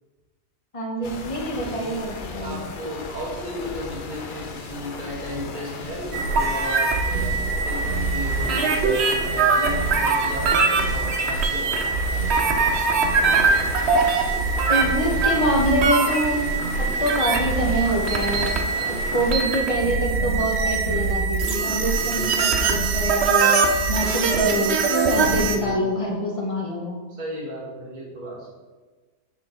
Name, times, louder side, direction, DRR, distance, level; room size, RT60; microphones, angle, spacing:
voice 1, 0.7-2.6 14.7-16.4 16.8-18.6 18.9-27.0, equal, 25° left, -1 dB, 0.8 m, -25 dB
sound 1, 1.0-19.3, left 4 dB, 70° left, 0.4 m, -36 dB
voice 2, 2.4-12.6 18.7-19.2 22.0-22.5 25.1-25.9 27.1-28.5, equal, 30° right, -6 dB, 1.8 m, -35 dB
sound 2, 6.1-25.6, right 4 dB, 60° right, 0.7 m, -22 dB
6.5 x 4.6 x 3.8 m, 1.3 s
omnidirectional pair, 1.6 m